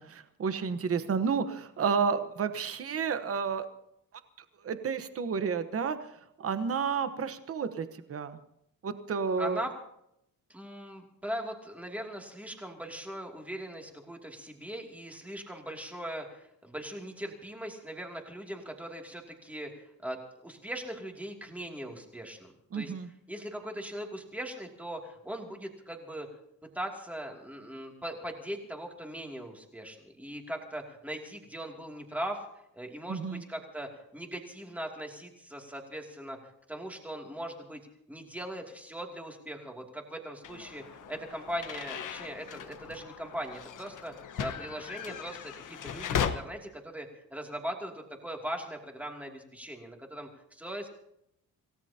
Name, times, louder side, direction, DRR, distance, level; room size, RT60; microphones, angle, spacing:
voice 1, 0.0-3.7 4.6-6.0 6.4-8.4 8.8-9.6 22.7-23.1 33.1-33.4, right 6 dB, 45° right, 10 dB, 1.2 m, -31 dB
voice 2, 9.4-9.7 10.5-22.9 23.3-26.3 26.7-37.8 38.1-50.9, right 1 dB, 5° right, 1 dB, 2.6 m, -40 dB
sound 1, 40.4-46.3, left 8 dB, 65° left, 1.3 m, -37 dB
27.5 x 17.5 x 2.9 m, 0.77 s
wide cardioid pair, 170°, 33 cm